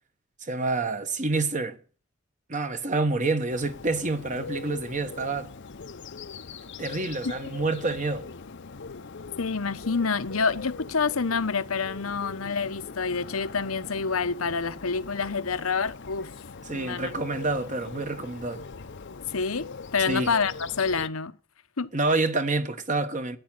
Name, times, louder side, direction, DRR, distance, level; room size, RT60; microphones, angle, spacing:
voice 1, 0.4-1.8 2.5-5.5 6.8-8.3 16.7-18.6 20.1-20.3 21.9-23.4, right 3 dB, 35° right, 1.4 m, -28 dB
Bird, 3.5-21.1, left 4 dB, 60° left, 0.8 m, -41 dB
voice 2, 9.4-16.3 16.7-17.2 19.3-19.7 19.9-21.4 21.8-21.9, left 5 dB, 85° left, 1.1 m, -27 dB
14.5 x 9.9 x 9.2 m
head